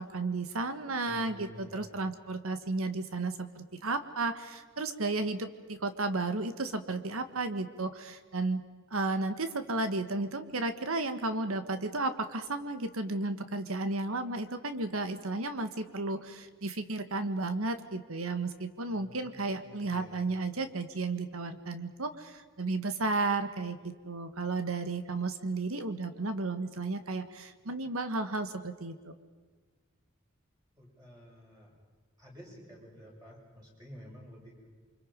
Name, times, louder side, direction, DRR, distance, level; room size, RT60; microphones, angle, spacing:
voice 1, 0.0-8.6 8.9-29.1, right 3 dB, 85° right, 9 dB, 1.6 m, -33 dB
voice 2, 1.1-1.8 18.9-19.3 19.6-20.1 30.8-31.7 32.2-34.6, equal, 20° right, -4 dB, 7.5 m, -51 dB
29.0 x 25.0 x 5.3 m, 1.5 s
head